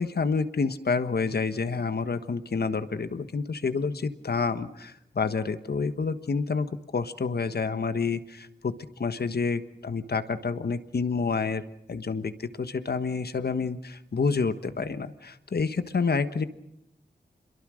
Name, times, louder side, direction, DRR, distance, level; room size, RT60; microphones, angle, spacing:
voice 1, 0.0-6.7 6.9-11.6 11.9-16.4, left 4 dB, 65° left, 11 dB, 1.4 m, -28 dB
27.5 x 22.0 x 6.5 m, 0.80 s
wide cardioid pair, 90°, 17 cm